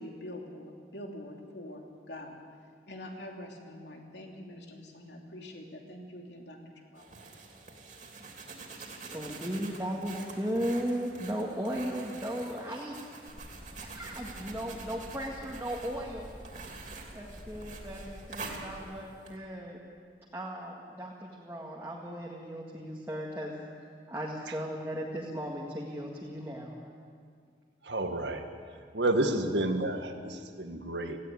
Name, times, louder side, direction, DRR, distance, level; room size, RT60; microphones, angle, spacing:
voice 1, 0.0-1.8 2.1-2.4 2.9-7.1, left 1 dB, 80° left, 1 dB, 2.9 m, -45 dB
sound 1, 7.0-19.4, right 3 dB, 45° right, 2.9 m, -46 dB
voice 2, 9.1-13.0 13.8-16.3 17.1-19.8 20.3-23.5 24.1-26.8, equal, 15° right, -4 dB, 1.9 m, -36 dB
sound 2, 13.3-18.7, equal, 30° left, 2.1 m, -49 dB
voice 3, 27.8-28.4 28.9-31.2, right 1 dB, 85° right, 6 dB, 1.8 m, -30 dB
18.0 x 15.5 x 9.6 m, 2.1 s
head